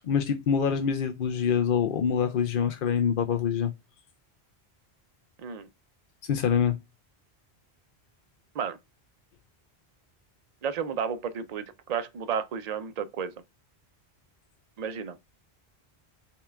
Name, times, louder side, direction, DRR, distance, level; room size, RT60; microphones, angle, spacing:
voice 1, 0.0-3.7 6.3-6.7, left 7 dB, 60° left, 0.7 m, -25 dB
voice 2, 10.6-13.3 14.8-15.2, right 7 dB, 50° right, 0.6 m, -32 dB
5.6 x 2.3 x 3.3 m
omnidirectional pair, 1.1 m